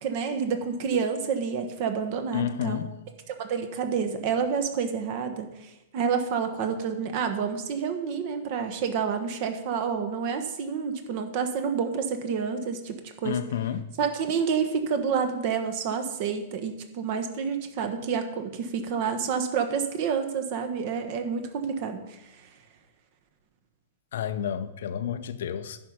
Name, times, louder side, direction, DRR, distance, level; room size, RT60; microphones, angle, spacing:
voice 1, 0.0-2.8 3.3-5.5 5.9-13.4 14.0-22.2, right 6 dB, 45° right, 1.2 m, -29 dB
voice 2, 2.3-2.9 13.2-13.9 24.1-25.8, left 9 dB, 60° left, 0.6 m, -30 dB
10.5 x 5.2 x 5.6 m
figure-of-eight pair, 100°, 0 cm